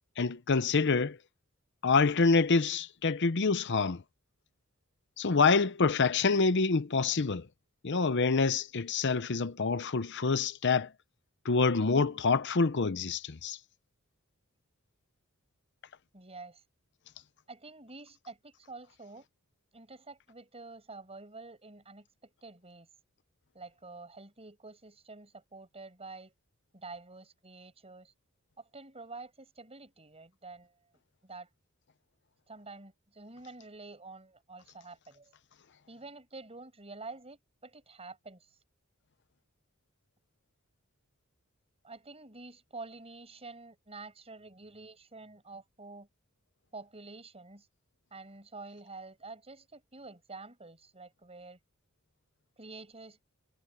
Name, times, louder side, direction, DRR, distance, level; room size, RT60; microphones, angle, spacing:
voice 1, 0.2-1.2 1.8-4.0 5.2-7.4 7.8-10.9 11.4-13.6, left 4 dB, 55° left, 0.7 m, -26 dB
voice 2, 16.1-16.6 17.5-19.3 19.7-22.9 23.5-26.3 26.7-28.1 28.6-30.7 31.2-31.5 32.5-35.3 35.9-38.5 41.8-46.1 46.7-47.7 48.1-51.6 52.6-53.2, right 3 dB, 30° right, 6.3 m, -48 dB
head